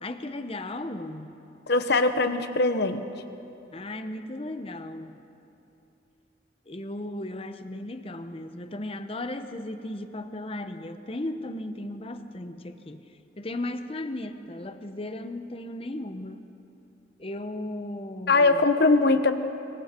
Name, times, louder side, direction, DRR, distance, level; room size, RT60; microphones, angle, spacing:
voice 1, 0.0-1.3 3.7-5.2 6.7-13.0 13.4-16.4 17.2-18.6, left 1 dB, 30° left, 9 dB, 0.8 m, -36 dB
voice 2, 1.7-3.0 18.3-19.3, left 3 dB, 60° left, 9 dB, 1.1 m, -21 dB
25.5 x 23.5 x 4.4 m, 2.7 s
head